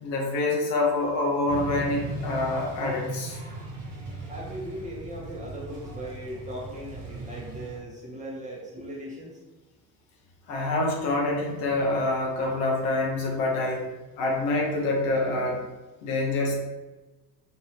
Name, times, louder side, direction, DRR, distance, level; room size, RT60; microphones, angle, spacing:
voice 1, 0.0-3.4 10.5-13.9 14.2-15.6 16.0-16.5, left 2 dB, 60° left, -1 dB, 0.9 m, -26 dB
sound 1, 1.5-7.8, right 2 dB, 45° right, 1.2 m, -37 dB
voice 2, 4.3-9.4, right 1 dB, 15° right, -4 dB, 0.9 m, -38 dB
2.8 x 2.7 x 3.0 m, 1.2 s
figure-of-eight pair, 60°, 48 cm